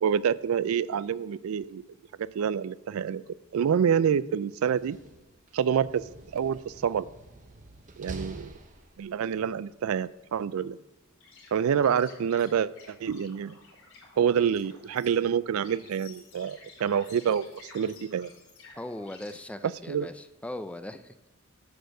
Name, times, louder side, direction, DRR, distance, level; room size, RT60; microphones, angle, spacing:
voice 1, 0.0-1.8 2.3-3.2 3.5-5.0 5.5-7.1 8.0-8.5 9.0-10.8 11.5-13.5 14.2-17.5 17.7-18.3 19.9-20.1, right 8 dB, 80° right, 18 dB, 0.4 m, -27 dB
Slam, 4.7-9.3, right 2 dB, 40° right, 0.9 m, -47 dB
sound 1, 11.2-19.4, left 4 dB, 85° left, 4.0 m, -52 dB
voice 2, 18.8-21.3, left 1 dB, 5° left, 10 dB, 0.4 m, -39 dB
11.5 x 4.4 x 6.4 m, 1.0 s
head